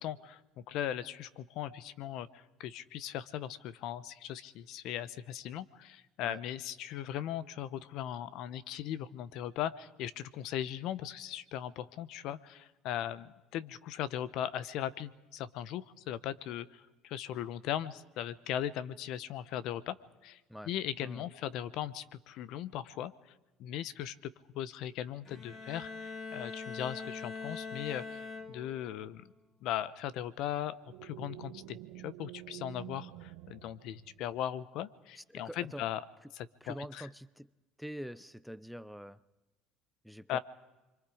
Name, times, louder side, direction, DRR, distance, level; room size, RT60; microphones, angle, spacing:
voice 1, 0.0-0.4 0.7-20.0 20.2-20.4 20.6-23.1 23.6-29.3 29.6-36.0 36.3-37.1 40.3-40.4, left 11 dB, 70° left, 18 dB, 1.0 m, -38 dB
Bowed string instrument, 25.2-28.9, left 4 dB, 40° left, 2.9 m, -43 dB
sound 1, 30.8-34.5, right 15 dB, 80° right, 1.4 m, -49 dB
voice 2, 35.2-35.9 36.6-37.5 37.8-39.2 40.0-40.4, equal, ahead, 16 dB, 0.7 m, -45 dB
29.0 x 24.0 x 5.0 m, 1.1 s
supercardioid pair, 80°, 0 cm